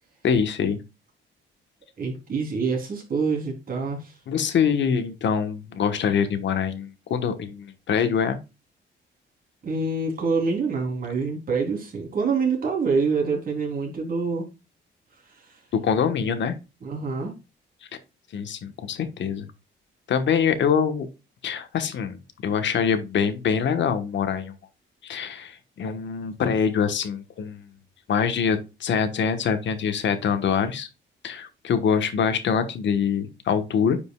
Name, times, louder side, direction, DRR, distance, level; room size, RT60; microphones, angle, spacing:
voice 1, 0.2-0.8 4.3-8.4 15.7-16.5 18.3-19.5 20.1-21.1 21.4-24.5 25.0-27.7 28.1-30.9 31.2-34.0, left 7 dB, 65° left, 9 dB, 1.3 m, -24 dB
voice 2, 2.0-4.2 9.6-14.4 15.3-15.6 16.8-17.3, right 4 dB, 45° right, 1 dB, 3.4 m, -26 dB
9.8 x 5.3 x 2.3 m, 0.27 s
cardioid pair, 135°, 21 cm